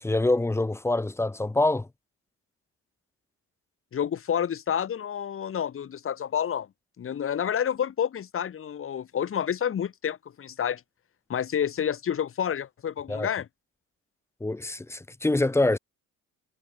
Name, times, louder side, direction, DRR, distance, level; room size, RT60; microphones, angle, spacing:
voice 1, 0.0-1.9 13.1-13.3 14.4-15.8, left 2 dB, 5° left, 0.6 m, -25 dB
voice 2, 3.9-6.7 7.0-10.8 11.3-13.5, left 9 dB, 30° left, 1.1 m, -29 dB
figure-of-eight pair, 50°, 42 cm